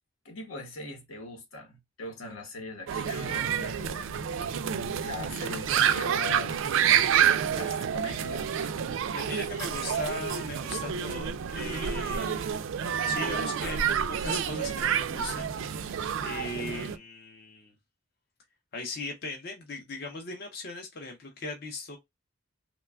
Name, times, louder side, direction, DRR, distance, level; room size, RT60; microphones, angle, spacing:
voice 1, 0.2-4.7 5.0-8.7, left 2 dB, 80° left, 1.0 m, -41 dB
sound 1, 2.9-17.0, right 8 dB, 65° right, 0.3 m, -28 dB
voice 2, 9.2-12.6 13.1-17.7 18.7-22.0, left 3 dB, 50° left, 0.6 m, -39 dB
3.1 x 2.2 x 2.3 m
head